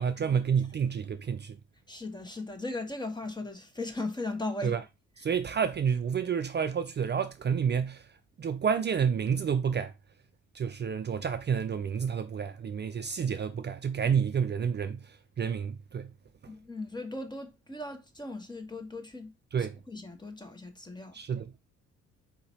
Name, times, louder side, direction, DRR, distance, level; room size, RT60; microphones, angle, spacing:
voice 1, 0.0-1.6 4.6-4.8 5.2-8.1 8.4-9.9 10.5-16.1 19.5-19.8 21.1-21.5, right 7 dB, 35° right, 0.5 m, -29 dB
voice 2, 1.9-4.8 16.5-19.3 19.6-21.2, left 2 dB, 15° left, 1.1 m, -38 dB
4.4 x 2.9 x 4.1 m
cardioid pair, 90°, 30 cm